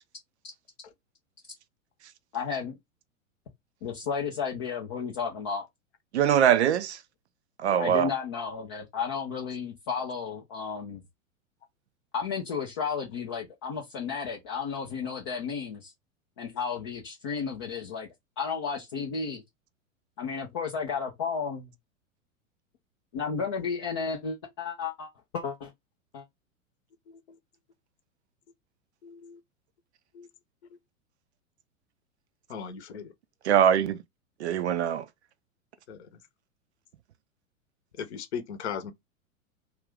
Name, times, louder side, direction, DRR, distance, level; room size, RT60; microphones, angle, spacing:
voice 1, 2.3-2.8 3.8-5.7 7.8-11.0 12.1-15.9 16.4-18.1 18.4-19.4 20.2-21.7 23.1-25.7 26.1-26.2, left 6 dB, 20° left, 0.3 m, -33 dB
voice 2, 6.1-7.0 7.6-8.1 33.4-34.0 34.4-35.1, right 9 dB, 55° right, 0.5 m, -22 dB
voice 3, 29.0-29.4 30.1-30.3 32.5-33.1 35.9-36.0 38.0-38.9, left 7 dB, 50° left, 0.8 m, -37 dB
2.4 x 2.2 x 3.5 m
figure-of-eight pair, 95°, 41 cm